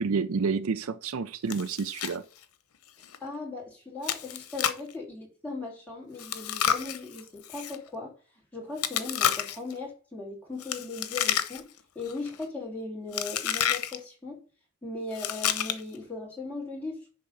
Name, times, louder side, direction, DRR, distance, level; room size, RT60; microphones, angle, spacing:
voice 1, 0.0-2.2, right 5 dB, 70° right, 0.5 m, -29 dB
Chewing mastication, 1.5-2.2 2.4-2.5 3.0-3.2 4.0-4.9 6.2-7.8 8.8-9.7 10.6-11.8 12.1-12.4 13.1-14.0 15.1-16.0, left 9 dB, 85° left, 0.9 m, -30 dB
voice 2, 3.2-8.1 8.5-11.7 11.9-14.4 14.8-17.1, left 3 dB, 5° left, 3.0 m, -38 dB
10.0 x 3.5 x 5.5 m
head